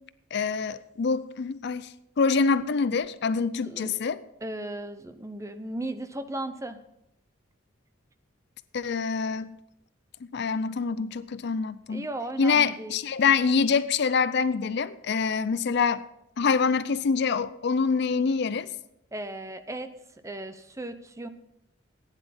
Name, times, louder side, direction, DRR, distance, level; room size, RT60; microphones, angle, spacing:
voice 1, 0.3-1.9 2.2-4.2 8.7-9.5 10.3-12.1 12.4-16.0 16.4-18.7, left 5 dB, 55° left, 0.4 m, -25 dB
voice 2, 3.6-4.0 4.4-6.8 11.9-13.0 19.1-19.9 20.2-21.3, right 1 dB, 15° right, 0.7 m, -36 dB
15.5 x 9.8 x 4.2 m
head